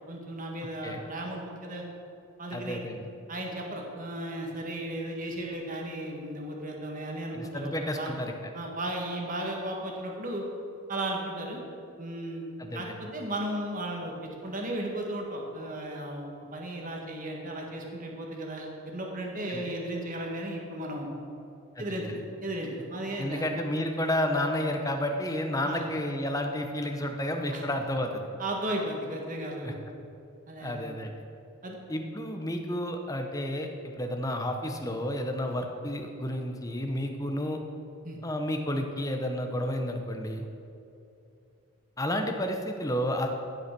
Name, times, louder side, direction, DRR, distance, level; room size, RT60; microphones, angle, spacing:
voice 1, 0.1-1.8 2.4-2.8 3.3-8.1 8.5-10.4 10.9-11.6 12.0-12.4 12.7-21.1 21.8-23.4 25.6-25.8 27.5-27.6 28.4-29.8 30.5-30.8 31.6-31.8 38.0-38.2, right 1 dB, 35° right, 0 dB, 1.5 m, -35 dB
voice 2, 2.5-3.1 7.3-8.3 12.6-12.9 19.5-19.6 21.8-22.1 23.2-28.2 29.6-29.7 30.6-31.1 31.9-33.7 34.0-37.6 38.2-40.4 42.0-43.3, left 1 dB, 15° left, 4 dB, 0.9 m, -31 dB
16.0 x 5.7 x 6.0 m, 2.7 s
head